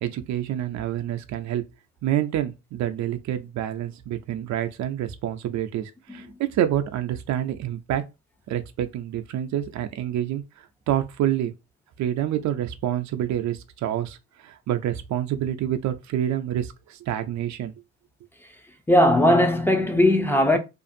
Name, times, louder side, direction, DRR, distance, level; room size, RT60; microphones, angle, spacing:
voice 1, 0.0-1.6 2.0-8.0 8.5-10.4 10.9-11.5 12.0-14.2 14.4-17.7, right 11 dB, 65° right, 0.4 m, -27 dB
voice 2, 18.9-20.6, left 1 dB, 5° left, 0.5 m, -18 dB
2.5 x 2.4 x 2.5 m
cardioid pair, 90°, 30 cm